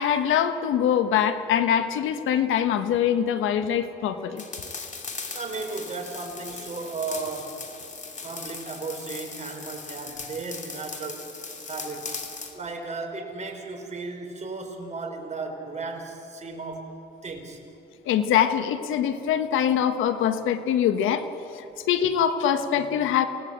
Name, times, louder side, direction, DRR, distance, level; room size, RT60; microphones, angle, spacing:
voice 1, 0.0-4.4 18.0-21.3 21.5-23.3, left 9 dB, 90° left, 9 dB, 1.5 m, -23 dB
sound 1, 4.4-12.6, left 4 dB, 40° left, 2.9 m, -38 dB
voice 2, 5.1-7.6 8.2-11.3 11.7-12.2 12.5-16.9 17.2-17.6, right 3 dB, 35° right, 2 dB, 4.8 m, -35 dB
29.5 x 17.5 x 8.1 m, 2.9 s
cardioid pair, 90°, 20 cm